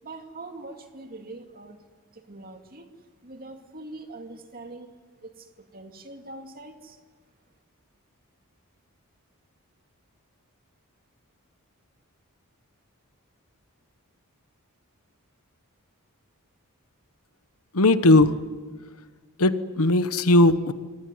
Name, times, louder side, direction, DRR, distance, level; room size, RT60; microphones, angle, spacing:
voice 1, 0.0-1.8 2.1-2.9 3.2-4.9 5.2-7.0, right 2 dB, 40° right, 5 dB, 2.4 m, -43 dB
voice 2, 17.7-18.4 19.4-20.7, left 2 dB, 70° left, 12 dB, 1.2 m, -18 dB
26.0 x 18.5 x 9.7 m, 1.4 s
head